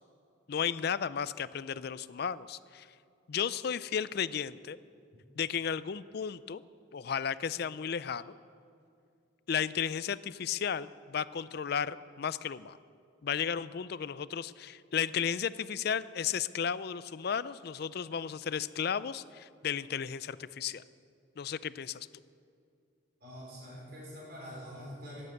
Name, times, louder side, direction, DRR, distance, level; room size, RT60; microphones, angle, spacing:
voice 1, 0.5-2.9 3.3-4.8 5.4-6.6 6.9-8.3 9.5-12.8 13.2-20.8 21.4-22.1, left 7 dB, 50° left, 16 dB, 0.4 m, -34 dB
voice 2, 23.2-25.2, equal, 50° right, -5 dB, 4.6 m, -45 dB
16.0 x 10.0 x 8.0 m, 2.4 s
head